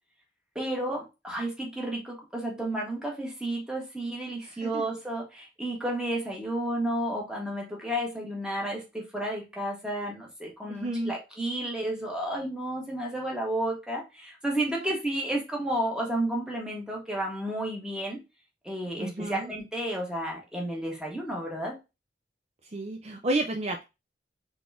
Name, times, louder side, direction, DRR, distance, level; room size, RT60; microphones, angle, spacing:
voice 1, 0.5-18.2 18.6-21.7, right 1 dB, 5° right, -2 dB, 1.4 m, -32 dB
voice 2, 4.4-4.8 10.7-11.1 14.7-15.0 19.0-19.5 22.6-23.8, right 1 dB, 35° right, 3 dB, 0.5 m, -32 dB
4.0 x 3.7 x 3.5 m, 0.26 s
head